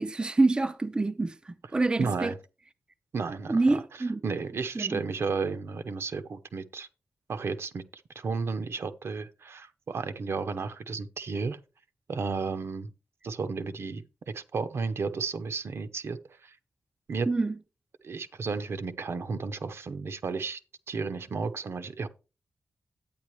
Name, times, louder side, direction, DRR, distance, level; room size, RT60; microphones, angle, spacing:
voice 1, 0.0-2.3 3.5-4.2 4.8-5.0 17.3-17.5, right 3 dB, 20° right, 0.4 m, -26 dB
voice 2, 2.0-2.3 3.1-3.8 4.2-6.9 7.3-11.6 12.1-12.9 13.2-16.6 17.1-17.3 18.0-20.6 20.9-22.1, right 4 dB, 60° right, 0.8 m, -33 dB
10.5 x 9.1 x 3.1 m
wide cardioid pair, 150°, 5 cm